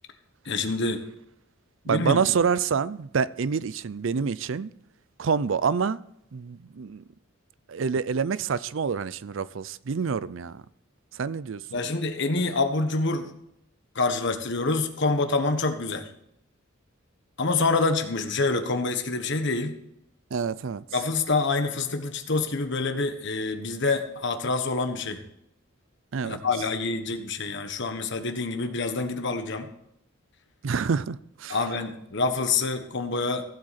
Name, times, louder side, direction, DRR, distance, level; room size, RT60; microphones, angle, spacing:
voice 1, 0.4-1.0 1.9-2.2 11.7-13.3 13.9-16.1 17.4-19.7 20.9-25.2 26.2-29.7 31.5-33.4, left 3 dB, 60° left, 1.4 m, -26 dB
voice 2, 1.9-4.7 5.2-6.0 6.3-7.0 7.7-10.6 11.2-11.6 20.3-20.8 26.1-26.4 30.6-31.6, right 6 dB, 65° right, 0.5 m, -27 dB
15.5 x 7.8 x 4.3 m
head